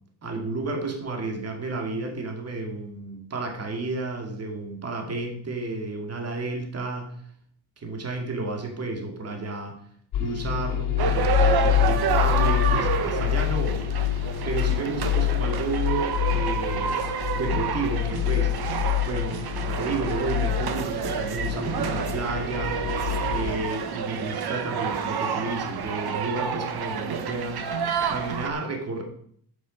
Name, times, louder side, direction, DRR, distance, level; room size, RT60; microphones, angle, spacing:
voice 1, 0.2-7.1 7.8-9.8 10.2-13.8 14.4-17.0 17.3-18.5 19.1-22.9 23.3-27.7 28.1-29.0, right 3 dB, 30° right, 2 dB, 2.4 m, -31 dB
sound 1, 10.1-23.5, left 13 dB, 85° left, 2.2 m, -26 dB
sound 2, 11.0-28.5, right 7 dB, 50° right, 1.3 m, -29 dB
11.5 x 9.1 x 5.2 m, 0.63 s
cardioid pair, 165°, 48 cm